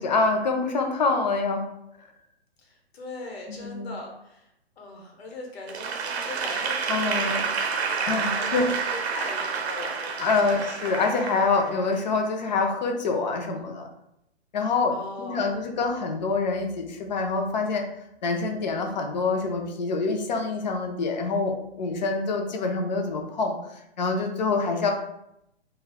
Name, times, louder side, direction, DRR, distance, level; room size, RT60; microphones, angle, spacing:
voice 1, 0.0-1.6 3.5-3.9 6.9-7.4 8.1-8.7 10.2-13.9 14.5-17.9 18.2-23.5 24.0-24.9, left 4 dB, 45° left, 4 dB, 0.5 m, -26 dB
voice 2, 2.6-4.5 4.8-10.6 14.9-15.6, left 2 dB, 70° left, 0 dB, 1.0 m, -40 dB
Applause / Crowd, 5.7-12.1, right 5 dB, 75° right, 0.6 m, -29 dB
2.5 x 2.2 x 3.4 m, 0.80 s
hypercardioid pair, 160°, 32 cm